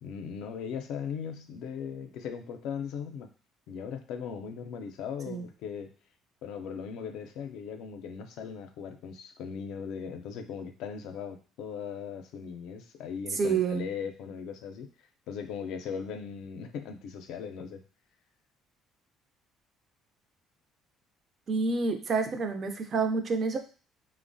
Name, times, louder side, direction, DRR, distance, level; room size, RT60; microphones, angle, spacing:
voice 1, 0.0-3.3 3.7-5.9 6.4-14.9 15.3-17.8, left 7 dB, 75° left, 6 dB, 0.4 m, -38 dB
voice 2, 13.3-13.9 21.5-23.6, right 4 dB, 40° right, 6 dB, 0.4 m, -28 dB
3.0 x 2.0 x 2.5 m, 0.38 s
cardioid pair, 110°, 0 cm